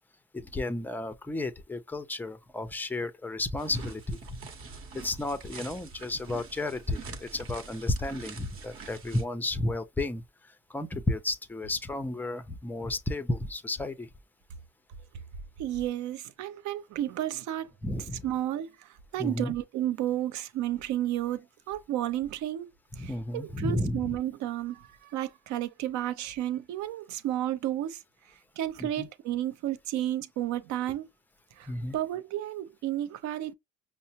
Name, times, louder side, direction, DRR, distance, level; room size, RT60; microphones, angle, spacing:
voice 1, 0.3-4.2 4.9-10.2 10.7-14.1 17.8-18.3 19.2-19.5 23.0-24.2 28.8-29.1 31.7-32.0, left 2 dB, 5° left, 0.5 m, -32 dB
sound 1, 3.6-9.2, right 5 dB, 45° right, 1.0 m, -45 dB
voice 2, 15.6-17.7 18.2-28.0 28.6-31.1 31.6-33.5, right 12 dB, 65° right, 0.6 m, -32 dB
5.3 x 2.0 x 2.8 m
cardioid pair, 110°, 31 cm